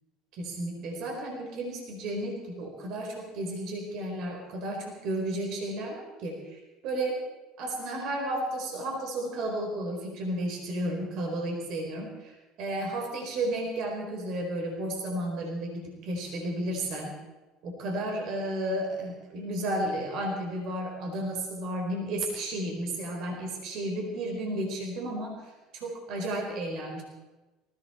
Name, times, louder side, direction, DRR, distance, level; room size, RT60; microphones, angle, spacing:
voice 1, 0.3-7.2 7.6-17.1 17.6-27.0, right 1 dB, 60° right, 1 dB, 4.3 m, -33 dB
20.0 x 16.0 x 4.4 m, 1.1 s
hypercardioid pair, 80°, 0 cm